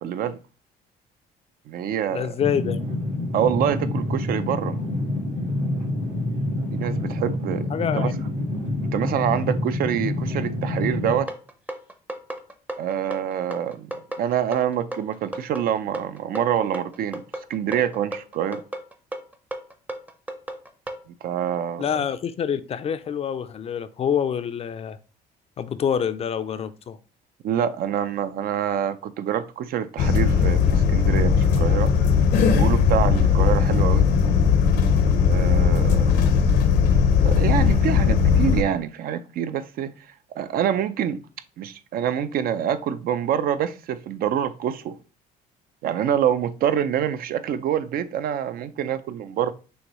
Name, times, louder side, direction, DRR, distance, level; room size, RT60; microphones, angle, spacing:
voice 1, 0.0-0.4 1.7-2.4 3.3-4.8 6.7-7.7 7.9-8.1 8.8-11.3 12.8-17.2 17.5-18.6 21.2-21.9 27.4-31.9 32.5-34.1 35.2-36.2 37.2-41.2 41.6-45.0 45.8-49.5, right 9 dB, 60° right, 0.4 m, -26 dB
voice 2, 2.1-2.8 7.7-8.1 21.8-25.0 25.6-27.0, left 8 dB, 35° left, 0.4 m, -26 dB
sound 1, 2.4-11.2, left 2 dB, 85° right, 2.7 m, -27 dB
sound 2, 11.3-21.0, right 1 dB, 10° right, 0.6 m, -34 dB
sound 3, 30.0-38.6, left 6 dB, 80° left, 0.8 m, -18 dB
6.3 x 2.6 x 3.0 m
cardioid pair, 110°, 17 cm